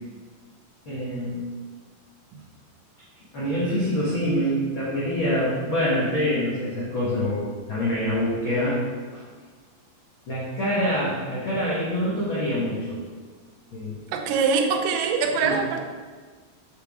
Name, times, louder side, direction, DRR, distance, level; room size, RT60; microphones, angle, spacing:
voice 1, 0.8-1.5 3.3-8.8 9.1-9.2 10.3-13.0 13.7-13.9 15.4-15.6, equal, 80° left, -9 dB, 1.1 m, -25 dB
voice 2, 14.1-15.8, right 5 dB, 85° right, 2 dB, 1.9 m, -23 dB
6.8 x 5.2 x 3.6 m, 1.5 s
omnidirectional pair, 4.6 m